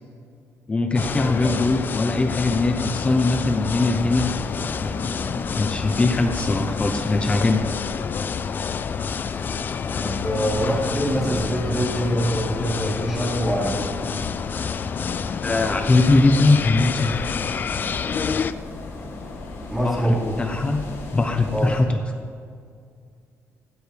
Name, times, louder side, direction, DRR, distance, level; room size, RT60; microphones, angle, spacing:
voice 1, 0.7-4.3 4.8-7.7 15.4-17.1 19.8-20.8 21.1-22.0, left 2 dB, 20° left, 5 dB, 0.9 m, -21 dB
sound 1, 0.9-18.5, left 6 dB, 35° left, 0.4 m, -28 dB
sound 2, 3.8-21.8, left 2 dB, 55° left, 2.6 m, -37 dB
voice 2, 10.0-13.9 19.7-20.4 21.5-21.8, equal, 5° right, -8 dB, 4.7 m, -24 dB
18.5 x 16.5 x 3.5 m, 2.2 s
cardioid pair, 140°, 5 cm